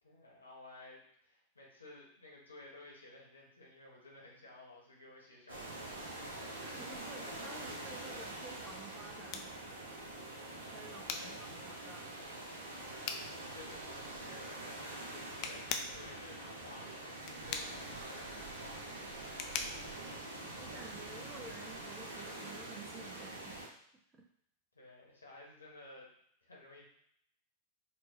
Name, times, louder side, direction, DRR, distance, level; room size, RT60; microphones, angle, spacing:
voice 1, 0.0-6.2 11.1-11.6 13.3-19.2 24.7-26.1 26.4-26.9, left 2 dB, 80° left, -2 dB, 1.0 m, -55 dB
sound 1, 5.5-23.7, right 2 dB, 75° right, 0.7 m, -45 dB
voice 2, 6.6-9.7 10.7-12.1 20.5-23.6 24.1-24.2, right 3 dB, 20° right, 2 dB, 0.6 m, -52 dB
sound 2, 9.1-21.1, left 6 dB, 40° left, 0.4 m, -45 dB
4.4 x 2.1 x 3.0 m, 0.69 s
figure-of-eight pair, 90°, 0 cm